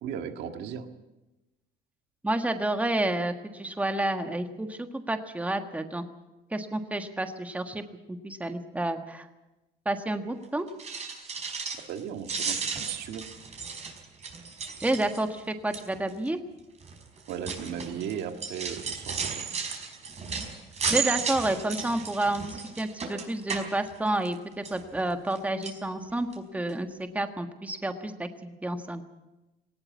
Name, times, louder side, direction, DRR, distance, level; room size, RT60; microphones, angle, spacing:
voice 1, 0.0-0.9 11.9-13.3 17.3-19.6, right 8 dB, 80° right, 6 dB, 1.9 m, -36 dB
voice 2, 2.2-6.0 6.5-9.3 9.8-10.7 14.8-16.4 20.9-29.0, right 1 dB, 10° right, 6 dB, 1.6 m, -30 dB
sound 1, 10.7-12.0 12.2-15.4 15.7-16.1 16.8-24.3 24.6-25.4 25.6-25.8 26.3-26.4 26.7-26.8, right 5 dB, 40° right, 4.8 m, -34 dB
19.0 x 18.0 x 8.4 m, 1.0 s
cardioid pair, 110°, 17 cm